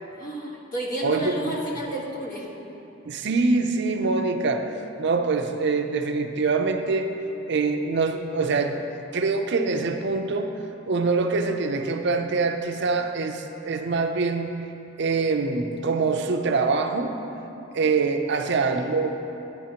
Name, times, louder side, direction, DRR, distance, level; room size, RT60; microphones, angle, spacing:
voice 1, 0.2-2.5 18.3-18.9, right 1 dB, 45° left, -3 dB, 1.3 m, -32 dB
voice 2, 1.0-1.5 3.0-4.7 5.0-7.1 7.5-8.8 9.1-10.5 10.9-14.6 15.0-17.1 17.7-19.2, right 4 dB, 60° right, 5 dB, 0.5 m, -24 dB
11.5 x 9.6 x 2.9 m, 3.0 s
head